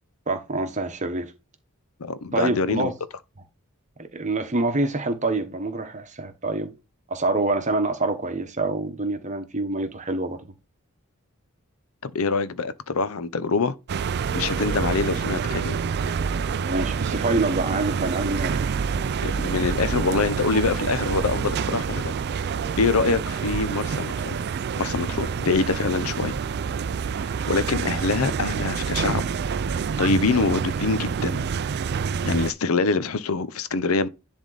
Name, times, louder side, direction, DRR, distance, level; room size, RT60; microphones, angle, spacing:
voice 1, 0.3-1.3 2.3-2.9 4.0-6.7 7.1-10.4 16.7-18.6 27.4-27.5, right 2 dB, 35° right, 1.1 m, -26 dB
voice 2, 2.0-2.9 12.0-13.7 14.3-15.8 19.2-22.1 22.8-24.4 24.8-26.4 27.2-29.3 30.0-31.5 32.2-34.1, left 4 dB, 85° left, 0.7 m, -25 dB
sound 1, 13.9-32.5, right 6 dB, 50° right, 0.4 m, -27 dB
10.5 x 3.5 x 4.0 m
head